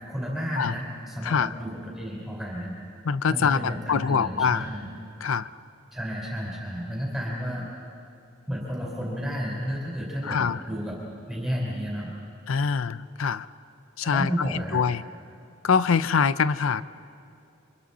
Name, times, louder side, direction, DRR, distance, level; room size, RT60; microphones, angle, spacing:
voice 1, 0.0-2.7 3.3-4.9 5.9-7.7 8.5-11.0 11.3-12.1 14.0-14.8, equal, ahead, -4 dB, 4.0 m, -32 dB
voice 2, 3.1-4.7 5.2-5.5 10.2-10.6 12.5-13.5 14.0-15.0 15.6-16.9, left 6 dB, 80° left, 15 dB, 0.5 m, -24 dB
29.0 x 25.0 x 4.2 m, 2.5 s
head